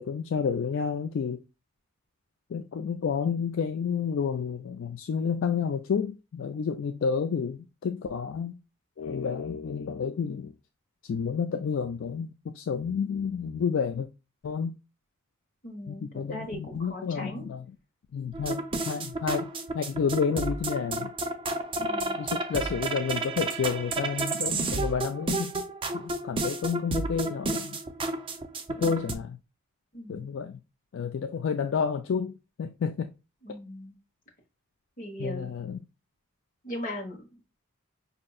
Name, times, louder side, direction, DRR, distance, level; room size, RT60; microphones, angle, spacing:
voice 1, 0.0-1.4 2.5-8.6 9.0-10.5 11.0-14.1 14.4-14.7 15.9-17.6 18.1-19.5 19.7-21.1 22.2-25.6 25.9-27.8 28.8-29.4 30.1-30.6 30.9-33.1 35.2-35.8, left 6 dB, 60° left, 0.3 m, -30 dB
voice 2, 15.6-17.5 21.8-22.2 29.9-30.3 33.4-34.0 35.0-35.5 36.6-37.2, left 1 dB, 40° left, 1.2 m, -39 dB
sound 1, 18.3-29.1, right 2 dB, 25° right, 0.5 m, -31 dB
5.2 x 2.7 x 2.3 m
head